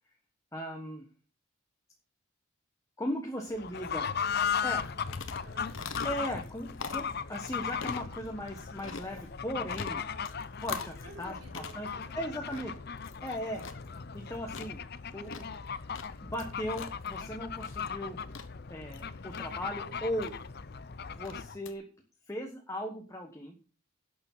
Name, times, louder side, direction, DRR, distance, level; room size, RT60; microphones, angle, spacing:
voice 1, 0.5-1.1 3.0-4.1 4.6-4.8 6.0-9.9 10.6-11.3 11.8-11.9 12.1-12.7 13.2-13.6 14.1-14.8 15.1-15.5 16.2-18.2 18.7-20.3 21.1-21.8 22.3-23.5, equal, 15° left, 2 dB, 1.2 m, -37 dB
voice 2, 3.4-5.8 9.9-10.4 10.8-12.9 13.5-13.8, right 1 dB, 70° right, -1 dB, 5.6 m, -53 dB
Fowl / Bird, 3.5-21.6, left 6 dB, 50° left, 0.6 m, -37 dB
sound 1, 4.8-21.7, left 5 dB, 65° left, 1.1 m, -46 dB
11.5 x 7.0 x 5.6 m, 0.37 s
head